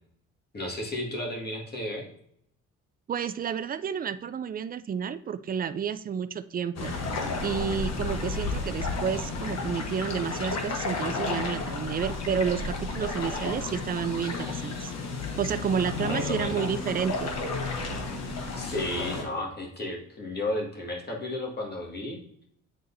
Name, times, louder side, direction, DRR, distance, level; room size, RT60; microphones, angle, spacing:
voice 1, 0.5-2.1 13.2-13.8 16.0-16.8 18.6-22.2, left 1 dB, 35° left, -1 dB, 1.9 m, -33 dB
voice 2, 3.1-6.9 7.4-14.9 15.4-17.3, right 7 dB, 30° right, 12 dB, 0.4 m, -30 dB
sound 1, 6.8-19.2, left 3 dB, 60° left, 1.2 m, -32 dB
9.1 x 3.8 x 2.7 m, 0.67 s
cardioid pair, 90°, 30 cm